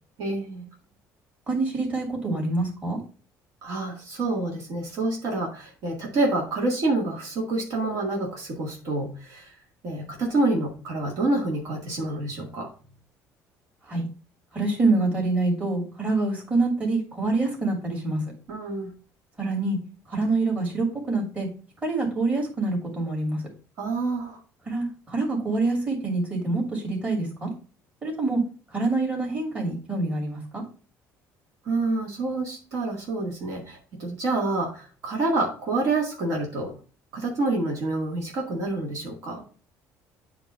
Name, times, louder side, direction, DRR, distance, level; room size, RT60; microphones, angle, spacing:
voice 1, 0.2-0.7 3.6-9.6 9.8-12.7 18.5-18.9 23.8-24.4 31.6-36.7 37.1-39.4, right 2 dB, 55° right, -1 dB, 2.0 m, -27 dB
voice 2, 1.5-3.0 13.9-14.1 14.5-18.2 19.4-19.8 20.1-21.5 21.8-23.4 24.7-27.5 28.0-28.4 28.7-30.6, right 3 dB, 20° right, -1 dB, 2.8 m, -26 dB
8.8 x 3.1 x 5.6 m, 0.38 s
cardioid pair, 145°, 7 cm